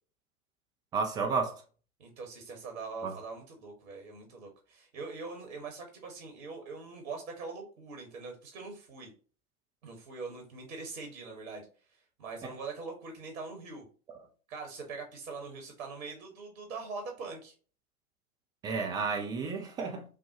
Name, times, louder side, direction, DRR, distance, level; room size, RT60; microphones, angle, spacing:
voice 1, 0.9-1.6 3.0-3.1 12.4-12.5 18.6-20.0, right 4 dB, 10° right, 0.3 m, -32 dB
voice 2, 2.0-9.1 9.8-11.6 11.9-13.8 14.5-17.5, right 4 dB, 65° right, 1.4 m, -42 dB
6.4 x 2.2 x 2.8 m
figure-of-eight pair, 85°, 43 cm